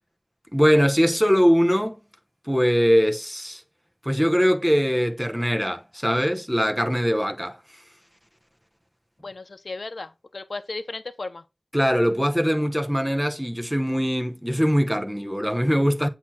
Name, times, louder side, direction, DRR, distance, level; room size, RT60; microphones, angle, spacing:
voice 1, 0.5-2.0 2.5-3.6 4.0-7.6 11.7-16.1, equal, 5° right, 0.9 m, -21 dB
voice 2, 9.2-11.4, left 3 dB, 75° left, 0.7 m, -35 dB
8.3 x 2.8 x 5.8 m
wide cardioid pair, 60°, 0 cm